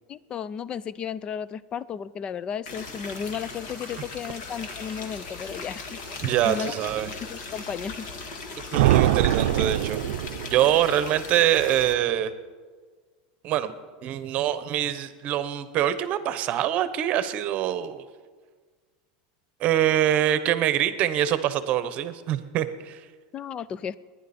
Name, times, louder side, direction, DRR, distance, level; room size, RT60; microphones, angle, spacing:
voice 1, 0.1-6.0 6.4-6.8 7.3-8.1 23.3-24.0, left 7 dB, 25° left, 19 dB, 0.4 m, -34 dB
sound 1, 2.7-11.9, left 3 dB, 55° left, 2.0 m, -38 dB
voice 2, 6.2-7.1 8.7-10.0 10.5-12.3 13.4-13.7 14.0-18.0 19.6-23.0, right 11 dB, 40° right, 13 dB, 0.9 m, -24 dB
sound 2, 8.7-11.0, right 13 dB, 85° right, 0.6 m, -23 dB
30.0 x 10.5 x 4.3 m, 1.5 s
supercardioid pair, 155°, 4 cm